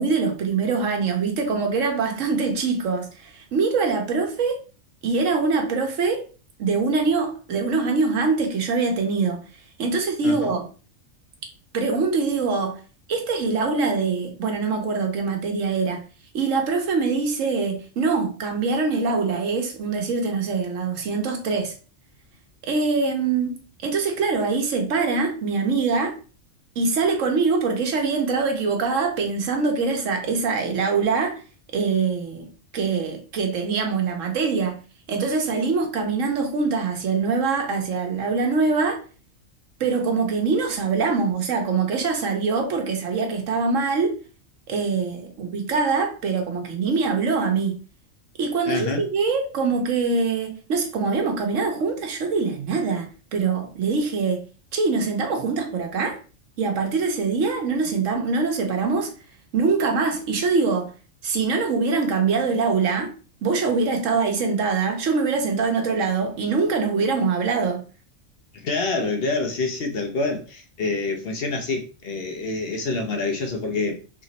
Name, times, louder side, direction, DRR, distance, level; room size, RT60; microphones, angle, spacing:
voice 1, 0.0-4.6 5.0-6.3 6.6-9.4 9.8-10.7 11.7-12.8 13.1-16.0 16.3-21.7 22.6-23.6 23.8-26.1 26.8-31.4 31.7-34.8 35.1-39.0 39.8-44.1 44.7-47.8 48.4-54.4 54.7-56.2 56.6-59.1 59.5-60.9 61.2-63.1 63.4-67.8, right 4 dB, 80° right, 1.2 m, -23 dB
voice 2, 10.2-10.5 48.7-49.0 68.5-74.0, left 3 dB, 55° left, 0.8 m, -27 dB
3.3 x 3.0 x 4.0 m
omnidirectional pair, 1.3 m